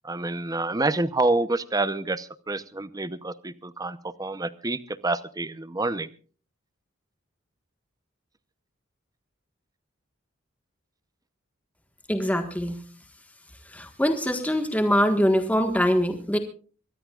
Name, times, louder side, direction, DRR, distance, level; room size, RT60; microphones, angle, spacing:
voice 1, 0.0-6.1, right 2 dB, 20° right, 14 dB, 0.8 m, -28 dB
voice 2, 12.1-12.8 13.7-16.4, equal, 10° left, 5 dB, 1.5 m, -23 dB
24.5 x 18.5 x 2.4 m, 0.40 s
head